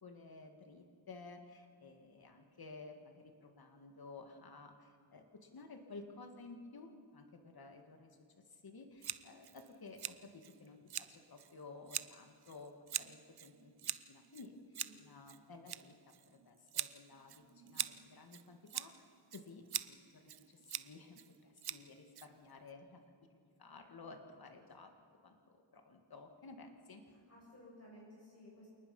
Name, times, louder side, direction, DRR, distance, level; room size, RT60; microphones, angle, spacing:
voice 1, 0.0-8.2 8.5-15.9 16.3-23.0 23.6-24.9 25.2-27.0, left 3 dB, 45° left, 5 dB, 2.1 m, -54 dB
Scissors, 9.0-22.7, right 10 dB, 50° right, 0.6 m, -45 dB
voice 2, 27.1-28.7, left 1 dB, 30° left, -5 dB, 7.6 m, -57 dB
28.0 x 19.5 x 5.5 m, 2.3 s
wide cardioid pair, 115°, 49 cm